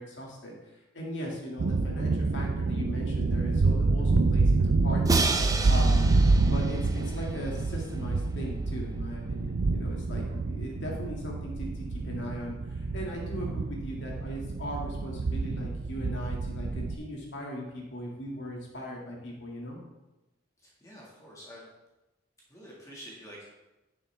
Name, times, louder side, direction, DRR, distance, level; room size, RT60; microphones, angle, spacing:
voice 1, 0.0-5.0 5.7-19.8, equal, 70° left, -2 dB, 2.2 m, -38 dB
sound 1, 1.6-17.0, right 3 dB, 80° right, 0.6 m, -27 dB
Crash cymbal, 5.1-8.0, right 3 dB, 20° right, 0.5 m, -31 dB
voice 2, 20.6-21.7 22.5-23.5, equal, 15° left, -5 dB, 1.8 m, -47 dB
10.5 x 6.9 x 3.4 m, 1.0 s
head